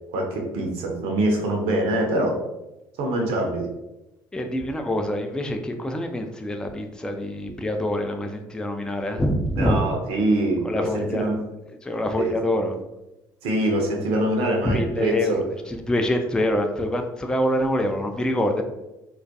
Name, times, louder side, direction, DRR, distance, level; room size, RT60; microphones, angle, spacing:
voice 1, 0.1-2.4 3.0-3.7 9.6-11.4 12.2-12.3 13.4-15.4, right 1 dB, 60° right, 1 dB, 0.6 m, -24 dB
voice 2, 4.3-9.8 10.6-11.2 11.8-12.8 14.6-18.6, left 1 dB, 5° left, 5 dB, 0.3 m, -25 dB
2.3 x 2.1 x 2.6 m, 0.96 s
hypercardioid pair, 55°, 11 cm